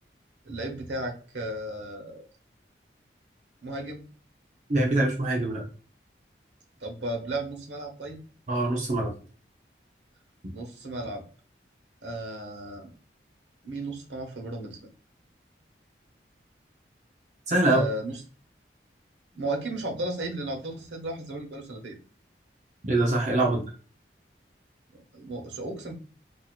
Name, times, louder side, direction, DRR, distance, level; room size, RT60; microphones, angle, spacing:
voice 1, 0.4-2.3 3.6-4.0 6.8-8.2 10.5-11.2 12.0-12.9 13.6-14.8 17.6-18.2 19.3-22.0 23.5-23.6 25.1-25.9, right 1 dB, 90° right, 3 dB, 1.1 m, -34 dB
voice 2, 4.7-5.6 8.5-9.1 17.5-17.8 22.8-23.6, right 2 dB, 40° right, 0 dB, 0.7 m, -24 dB
4.5 x 2.8 x 2.4 m, 0.38 s
head